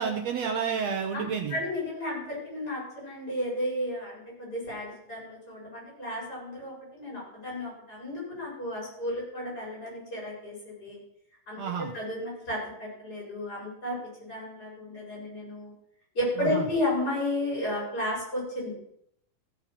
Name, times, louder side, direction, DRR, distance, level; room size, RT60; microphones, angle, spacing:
voice 1, 0.0-1.6 11.6-11.9 16.4-16.6, right 6 dB, 70° right, 3 dB, 1.7 m, -30 dB
voice 2, 1.5-11.0 11.5-15.7 16.1-18.7, left 1 dB, 25° left, -5 dB, 5.3 m, -33 dB
15.5 x 5.9 x 5.8 m, 0.73 s
omnidirectional pair, 4.1 m